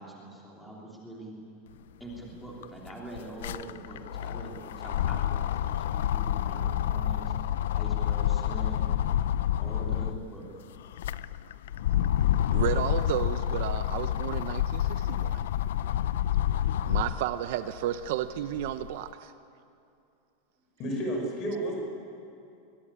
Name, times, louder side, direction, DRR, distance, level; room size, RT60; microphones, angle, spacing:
voice 1, 0.0-1.4 2.0-7.3 7.7-8.8 9.6-10.4, right 2 dB, ahead, -3 dB, 3.0 m, -43 dB
sound 1, 2.1-2.2 2.5-10.3 10.8-17.3 17.8-18.9, left 11 dB, 80° left, 0.6 m, -28 dB
voice 2, 12.5-15.5 16.9-19.3, right 12 dB, 50° right, 11 dB, 0.7 m, -32 dB
voice 3, 20.8-21.8, equal, 25° left, 1 dB, 5.7 m, -31 dB
23.0 x 21.5 x 9.9 m, 2.6 s
supercardioid pair, 180°, 0 cm